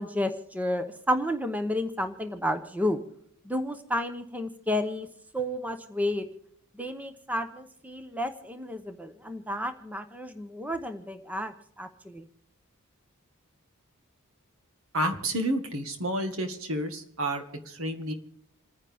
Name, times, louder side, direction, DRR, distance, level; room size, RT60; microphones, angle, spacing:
voice 1, 0.0-3.0 3.4-5.1 5.3-6.2 6.8-12.2, left 1 dB, 5° right, 8 dB, 0.9 m, -31 dB
voice 2, 14.9-18.1, right 1 dB, 65° right, 7 dB, 1.7 m, -30 dB
28.0 x 9.9 x 3.5 m, 0.74 s
head